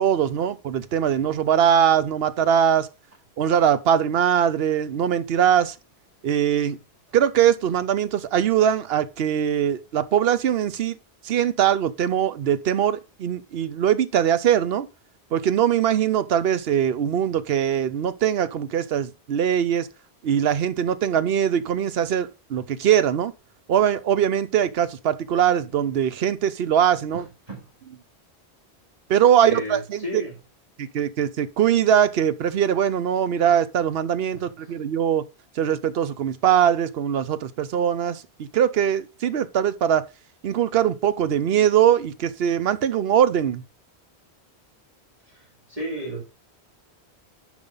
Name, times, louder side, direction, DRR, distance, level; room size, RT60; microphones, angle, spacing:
voice 1, 0.0-2.9 3.4-5.7 6.2-6.8 7.1-11.0 11.2-14.9 15.3-19.9 20.2-23.3 23.7-27.3 29.1-30.2 30.8-35.2 35.6-40.0 40.4-43.6, right 9 dB, 65° right, 0.9 m, -21 dB
voice 2, 27.1-27.7 29.5-30.3 34.6-34.7 45.3-46.2, equal, 35° right, 2.7 m, -34 dB
10.5 x 4.8 x 4.0 m
omnidirectional pair, 1.1 m